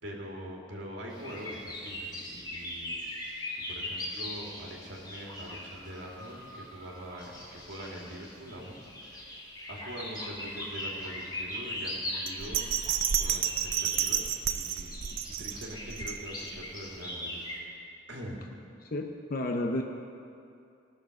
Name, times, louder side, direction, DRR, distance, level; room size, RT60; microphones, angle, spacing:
voice 1, 0.0-3.4 3.7-9.3 9.7-15.0 15.4-17.4 17.6-17.7 18.1-18.4, equal, 65° right, -2 dB, 2.1 m, -43 dB
sound 1, 1.1-17.6, left 1 dB, 20° left, 2.1 m, -40 dB
Bell, 12.3-16.6 17.0-17.1, right 9 dB, 85° right, 0.6 m, -31 dB
voice 2, 18.9-19.8, left 1 dB, 50° left, 3 dB, 0.7 m, -31 dB
16.5 x 6.7 x 6.4 m, 2.6 s
head